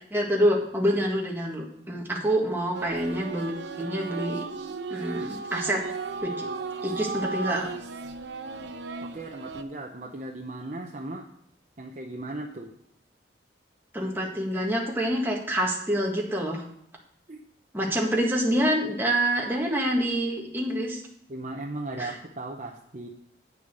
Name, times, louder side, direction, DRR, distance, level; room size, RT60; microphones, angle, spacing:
voice 1, 0.1-4.4 4.9-5.8 6.2-6.5 6.8-7.7 13.9-16.6 17.7-21.0 22.0-22.1, equal, 10° right, -1 dB, 1.7 m, -26 dB
sound 1, 2.7-9.6, right 4 dB, 70° right, 0.7 m, -35 dB
voice 2, 9.0-11.3 11.8-12.7 17.3-17.4 21.3-23.1, right 2 dB, 40° right, 1 dB, 0.8 m, -37 dB
8.7 x 6.9 x 6.2 m, 0.69 s
head